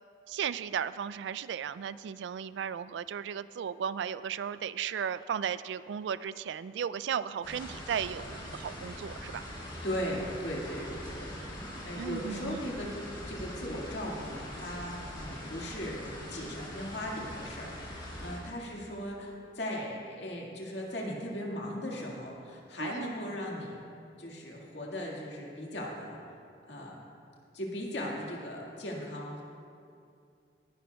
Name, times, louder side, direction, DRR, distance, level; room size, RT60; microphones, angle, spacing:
voice 1, 0.3-9.4 12.0-12.6 22.8-23.1, right 8 dB, 80° right, 16 dB, 0.3 m, -35 dB
sound 1, 7.4-18.4, equal, 25° left, 2.9 m, -42 dB
voice 2, 9.8-11.3 11.8-13.0 13.3-23.8 24.2-26.2 26.7-27.0 27.5-29.4, equal, 75° left, -2 dB, 2.0 m, -38 dB
18.5 x 11.5 x 2.3 m, 2.4 s
head